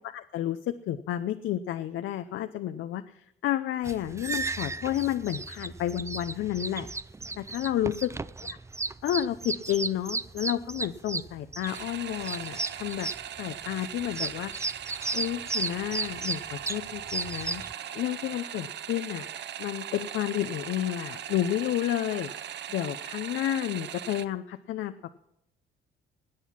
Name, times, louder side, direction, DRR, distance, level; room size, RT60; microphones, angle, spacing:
voice 1, 0.1-6.9 7.4-8.1 8.5-8.6 9.0-13.1 13.4-14.5 15.1-17.6 17.9-19.3 19.6-22.3 22.7-24.9, left 12 dB, 80° left, 9 dB, 0.6 m, -31 dB
sound 1, 3.8-17.7, right 3 dB, 15° right, 0.4 m, -34 dB
sound 2, 11.7-24.3, right 10 dB, 60° right, 0.7 m, -39 dB
19.5 x 8.2 x 5.8 m, 0.80 s
cardioid pair, 90°, 20 cm